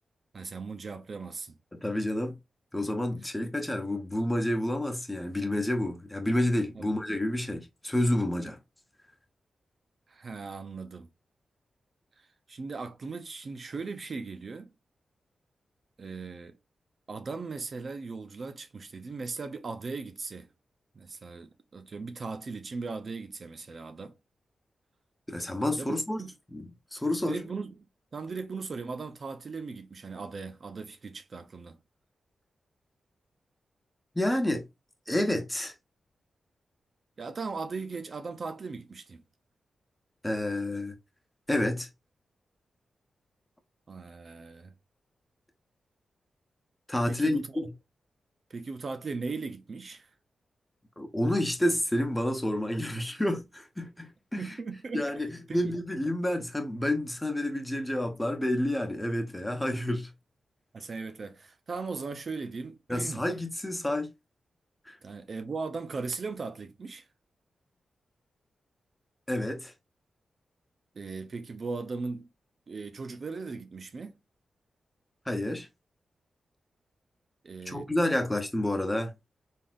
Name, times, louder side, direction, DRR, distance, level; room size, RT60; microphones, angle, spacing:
voice 1, 0.3-1.6 6.7-7.1 10.1-11.1 12.2-14.7 16.0-16.6 17.1-20.5 20.9-24.2 25.8-26.3 27.3-27.8 28.1-31.8 37.2-39.2 43.9-44.7 47.0-47.7 48.5-50.1 54.3-55.8 60.7-63.3 65.0-67.1 70.9-72.3 72.7-74.2 77.4-77.9, right 4 dB, 50° right, 0.6 m, -38 dB
voice 2, 1.7-2.4 2.7-8.6 25.3-26.2 26.5-27.4 34.1-34.6 35.1-35.7 40.2-40.9 41.5-41.9 46.9-47.7 51.0-54.4 54.9-60.1 62.9-64.1 64.9-65.0 69.3-69.7 75.3-75.7 77.7-79.1, left 1 dB, 10° left, 1.0 m, -29 dB
4.0 x 3.6 x 2.5 m
cardioid pair, 85°, 0 cm